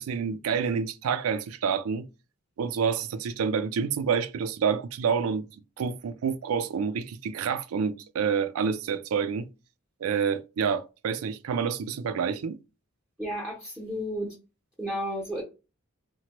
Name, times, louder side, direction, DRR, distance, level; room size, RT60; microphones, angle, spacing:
voice 1, 0.0-2.1 2.6-5.5 5.8-9.5 10.0-12.6, right 6 dB, 80° right, 0.4 m, -28 dB
voice 2, 13.2-14.3 14.8-15.4, equal, 5° right, 0.7 m, -32 dB
2.9 x 2.2 x 2.9 m
head